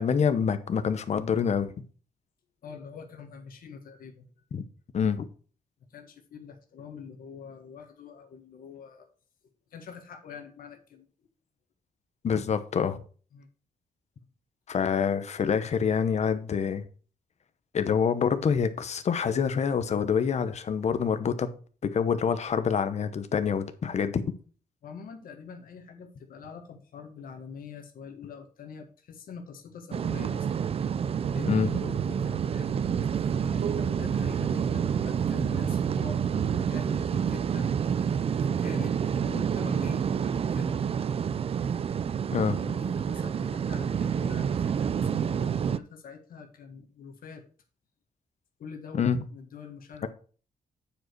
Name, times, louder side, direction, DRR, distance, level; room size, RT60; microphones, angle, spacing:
voice 1, 0.0-1.7 4.5-4.6 4.9-5.3 12.2-13.0 14.7-16.8 17.7-21.5 21.8-24.2 31.5-31.7 42.3-42.6 48.9-49.2 50.0-50.1, left 7 dB, 50° left, 0.9 m, -26 dB
voice 2, 2.6-4.3 5.9-9.1 9.7-11.1 13.3-13.5 24.8-30.6 31.3-37.8 38.5-40.8 42.5-47.4 48.6-50.0, left 6 dB, 70° left, 1.7 m, -44 dB
sound 1, 29.9-45.8, right 7 dB, 40° right, 0.4 m, -28 dB
sound 2, 31.2-36.7, right 9 dB, 80° right, 0.7 m, -37 dB
9.0 x 5.0 x 4.6 m
cardioid pair, 120°, 15 cm